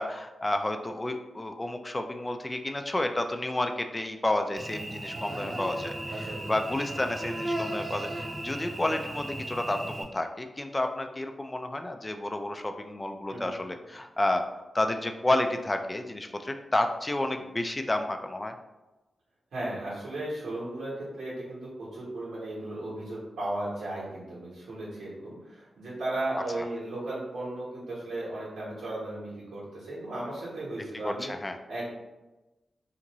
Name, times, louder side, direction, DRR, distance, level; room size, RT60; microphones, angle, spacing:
voice 1, 0.0-14.5 14.7-18.5 30.8-31.6, left 1 dB, 25° left, 6 dB, 0.3 m, -31 dB
Cricket / Buzz, 4.6-10.0, right 1 dB, 45° right, 0.5 m, -36 dB
voice 2, 5.3-6.5 13.3-13.6 19.5-31.3 31.7-31.8, right 1 dB, 85° right, -7 dB, 1.1 m, -36 dB
2.6 x 2.4 x 3.0 m, 1.0 s
cardioid pair, 45°, 0 cm